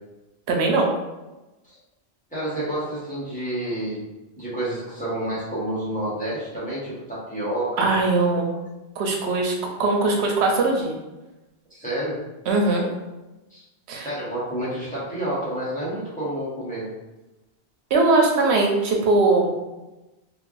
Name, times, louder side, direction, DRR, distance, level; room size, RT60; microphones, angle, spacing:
voice 1, 0.5-0.9 7.8-8.5 9.0-9.5 9.8-11.0 12.5-12.9 13.9-14.1 17.9-19.5, right 3 dB, 90° right, 1 dB, 0.9 m, -20 dB
voice 2, 2.3-4.0 4.4-7.8 11.7-12.2 13.5-13.6 14.0-16.9, right 1 dB, 10° left, -10 dB, 1.1 m, -29 dB
3.3 x 2.4 x 2.5 m, 1.0 s
omnidirectional pair, 1.1 m